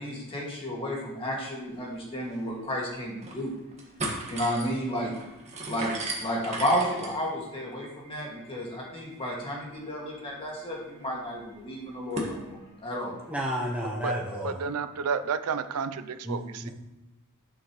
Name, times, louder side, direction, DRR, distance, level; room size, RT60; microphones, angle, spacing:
voice 1, 0.0-3.5 4.3-5.1 5.7-13.2, equal, 25° left, -3 dB, 2.0 m, -32 dB
sound 1, 2.0-2.1 2.3-2.4 3.0-3.4 3.7-12.4, right 2 dB, 30° right, 1.6 m, -39 dB
voice 2, 13.3-14.6 16.2-16.7, equal, 5° right, -3 dB, 0.7 m, -31 dB
voice 3, 14.4-16.7, right 6 dB, 85° right, 11 dB, 0.5 m, -31 dB
11.0 x 6.4 x 3.1 m, 1.0 s
head